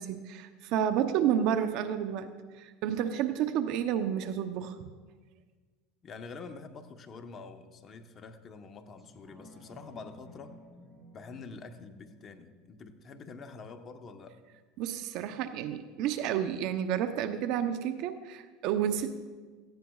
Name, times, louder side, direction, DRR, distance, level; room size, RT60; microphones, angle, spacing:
voice 1, 0.0-2.3 2.5-4.8 14.8-19.3, right 9 dB, 60° right, 9 dB, 0.7 m, -30 dB
voice 2, 6.0-10.6 11.1-14.4, left 4 dB, 35° left, 6 dB, 1.0 m, -46 dB
sound 1, 9.0-14.0 14.4-14.5, left 1 dB, ahead, 4.0 m, -55 dB
17.5 x 15.0 x 2.4 m, 1.4 s
supercardioid pair, 115°, 0 cm